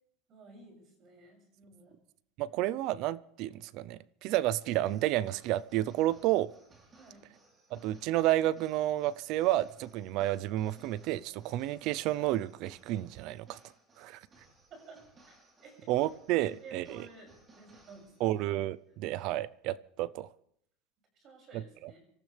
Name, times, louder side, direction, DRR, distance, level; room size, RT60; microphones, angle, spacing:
voice 1, 0.3-2.0 6.9-7.2 14.7-15.9 16.4-18.3 21.1-22.1, right 3 dB, 40° right, 6.8 m, -53 dB
voice 2, 2.4-6.5 7.7-13.6 14.0-14.2 15.9-17.0 18.2-20.3 21.5-21.9, right 15 dB, 55° right, 0.6 m, -31 dB
sound 1, 4.5-18.5, right 2 dB, 20° right, 3.6 m, -62 dB
26.0 x 14.0 x 3.4 m
supercardioid pair, 140°, 0 cm